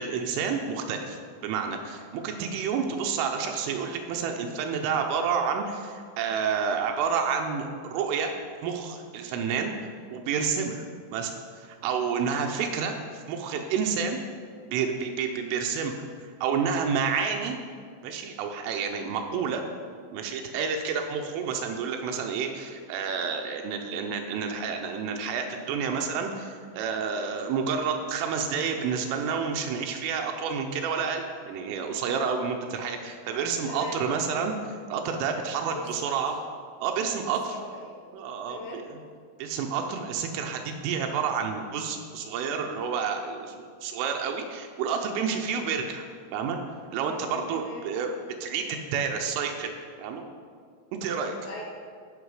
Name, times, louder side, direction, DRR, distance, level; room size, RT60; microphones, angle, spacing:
voice 1, 0.0-8.3 8.6-14.2 14.7-17.6 18.0-19.6 20.1-36.4 36.8-37.6 38.1-39.0 39.4-46.0 46.3-46.6 46.9-48.1 48.4-50.2 51.0-51.4, right 6 dB, 80° right, 4 dB, 3.1 m, -29 dB
voice 2, 33.7-34.2 35.5-36.2 37.4-38.1 38.5-38.9 47.0-47.9 51.4-51.6, left 2 dB, 70° left, -1 dB, 2.2 m, -41 dB
14.5 x 5.8 x 4.8 m, 2.1 s
omnidirectional pair, 5.9 m